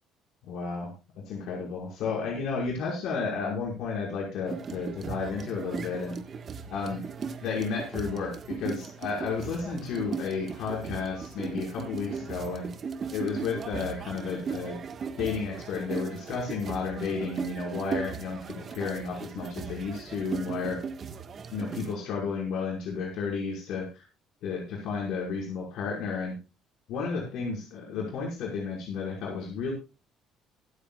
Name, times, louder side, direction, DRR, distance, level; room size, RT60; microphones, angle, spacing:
voice 1, 0.4-0.9 1.3-6.2 6.7-7.0 7.4-12.7 13.1-14.8 15.2-20.8 21.5-24.0 24.4-26.3 26.9-29.7, left 5 dB, 60° left, -1 dB, 5.5 m, -32 dB
sound 1, 4.5-22.0, right 6 dB, 35° right, 1.5 m, -38 dB
24.0 x 9.0 x 2.4 m, 0.28 s
cardioid pair, 155°, 0 cm